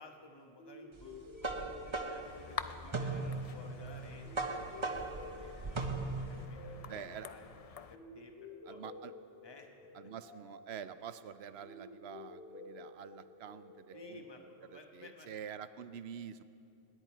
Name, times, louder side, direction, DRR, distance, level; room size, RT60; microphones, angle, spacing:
voice 1, 0.0-7.5 7.9-8.8 9.4-9.7 10.0-10.1 13.9-15.3, left 2 dB, 20° left, 3 dB, 1.2 m, -55 dB
sound 1, 0.6-15.4, left 3 dB, 85° left, 3.8 m, -53 dB
sound 2, 1.0-6.4, right 3 dB, 25° right, 0.8 m, -38 dB
sound 3, 2.2-8.0, left 6 dB, 60° left, 0.3 m, -48 dB
voice 2, 6.9-7.3 8.7-9.1 9.9-14.4 14.7-16.4, right 8 dB, 65° right, 13 dB, 0.8 m, -47 dB
28.0 x 10.5 x 4.5 m, 2.7 s
omnidirectional pair, 1.3 m